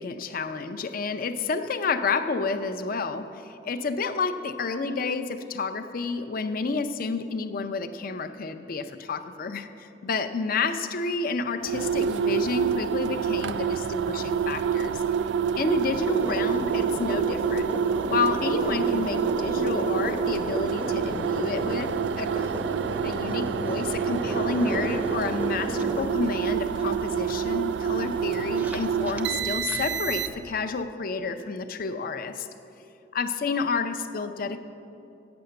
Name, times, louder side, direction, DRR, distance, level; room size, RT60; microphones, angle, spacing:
voice 1, 0.0-15.0 15.6-17.7 18.1-22.5 23.0-32.5 33.1-34.6, left 4 dB, 55° left, 9 dB, 0.5 m, -30 dB
sound 1, 11.6-30.6, right 7 dB, 75° right, 0.3 m, -27 dB
sound 2, 16.0-29.8, equal, 10° right, 0.6 m, -35 dB
9.3 x 6.9 x 7.8 m, 2.9 s
head